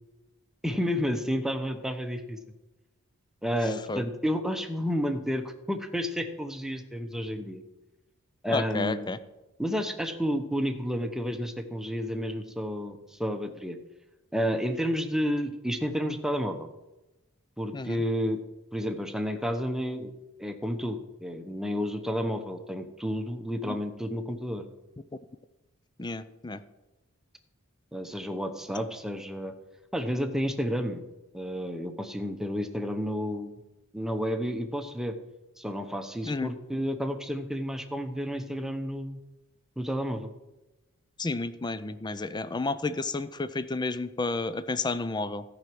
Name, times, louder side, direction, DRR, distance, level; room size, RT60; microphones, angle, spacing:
voice 1, 0.6-2.4 3.4-7.6 8.4-9.1 9.6-13.8 14.3-16.7 17.6-18.4 18.7-20.1 20.4-24.7 27.9-29.5 29.9-31.0 31.3-33.5 33.9-35.2 35.6-39.2 39.8-40.3, equal, ahead, 6 dB, 0.9 m, -31 dB
voice 2, 3.7-4.0 8.5-9.2 17.7-18.0 23.7-23.8 26.0-26.6 36.2-36.5 41.2-45.4, left 3 dB, 20° left, 14 dB, 0.5 m, -31 dB
14.0 x 5.8 x 7.7 m, 1.0 s
head